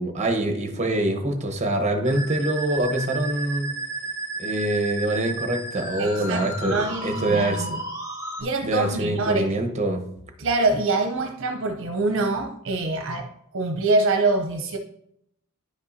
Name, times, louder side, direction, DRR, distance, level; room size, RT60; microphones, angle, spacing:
voice 1, 0.0-3.7 4.4-7.8 8.6-10.0, right 1 dB, 30° right, 5 dB, 1.0 m, -25 dB
Musical instrument, 2.0-8.4, right 3 dB, 15° right, 1.5 m, -33 dB
voice 2, 6.0-7.8 8.4-9.6 10.4-14.8, right 3 dB, 60° right, 4 dB, 0.7 m, -25 dB
10.0 x 5.3 x 2.7 m, 0.72 s
head